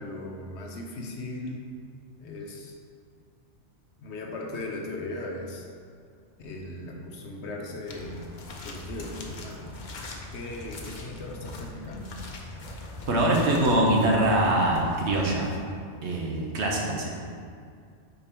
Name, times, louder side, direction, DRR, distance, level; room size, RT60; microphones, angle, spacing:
voice 1, 0.0-1.7 2.2-2.8 4.0-5.7 6.4-8.2 8.6-9.7 10.3-12.1, left 2 dB, 70° left, 1 dB, 1.0 m, -37 dB
sound 1, 7.9-16.0, left 2 dB, 50° left, 0.7 m, -41 dB
voice 2, 13.1-15.5 16.0-17.1, right 1 dB, 65° right, -2 dB, 1.2 m, -23 dB
5.1 x 4.6 x 4.4 m, 2.2 s
omnidirectional pair, 1.2 m